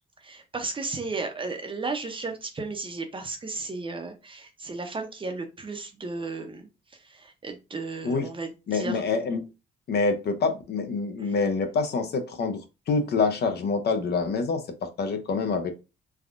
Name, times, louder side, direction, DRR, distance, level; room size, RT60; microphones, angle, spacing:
voice 1, 0.2-6.7 7.0-9.0 11.2-11.3, right 3 dB, 25° right, 6 dB, 0.6 m, -34 dB
voice 2, 8.7-9.4 9.9-15.7, left 4 dB, 55° left, 7 dB, 0.6 m, -26 dB
3.4 x 2.2 x 2.5 m, 0.28 s
cardioid pair, 90°, 20 cm